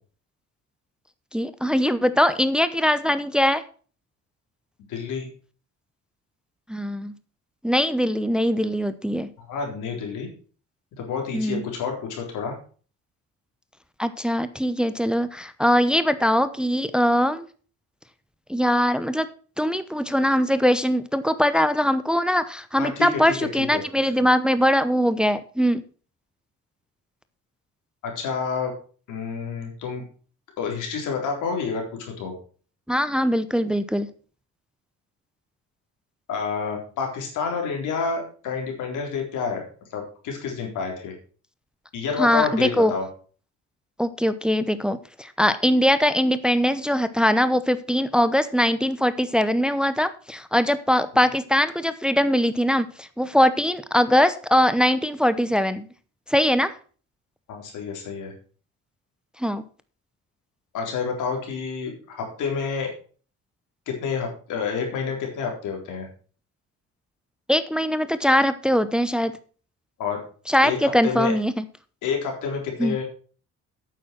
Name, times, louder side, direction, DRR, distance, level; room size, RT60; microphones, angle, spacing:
voice 1, 1.3-3.6 6.7-7.1 7.6-9.3 11.3-11.6 14.0-17.5 18.5-19.3 19.6-25.8 32.9-34.1 42.2-42.9 44.0-55.9 56.3-56.7 59.4-59.6 67.5-69.3 70.5-71.6 72.8-73.0, equal, 5° right, 13 dB, 0.8 m, -21 dB
voice 2, 4.9-5.3 9.4-10.3 11.0-12.6 22.8-24.3 28.0-28.7 29.1-30.0 30.6-32.3 36.3-39.7 39.9-41.1 41.9-43.1 57.5-58.3 60.7-62.9 63.9-66.1 70.0-70.2 70.6-71.3 72.0-73.0, left 5 dB, 85° left, 2 dB, 3.9 m, -29 dB
8.9 x 7.5 x 6.0 m, 0.40 s
cardioid pair, 90°, 30 cm